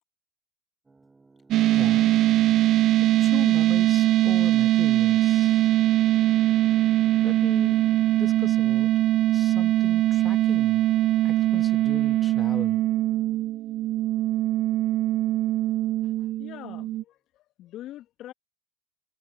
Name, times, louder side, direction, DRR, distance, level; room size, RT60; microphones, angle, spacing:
sound 1, 0.8-15.6, right 3 dB, 15° right, 6.5 m, -60 dB
sound 2, 1.5-17.0, right 15 dB, 50° right, 0.4 m, -22 dB
voice 1, 1.6-2.1 3.0-5.7 7.2-9.0 9.3-10.8 11.2-12.8, left 5 dB, 25° left, 1.6 m, -39 dB
voice 2, 16.2-18.3, left 13 dB, 50° left, 1.4 m, -43 dB
hypercardioid pair, 80°, 0 cm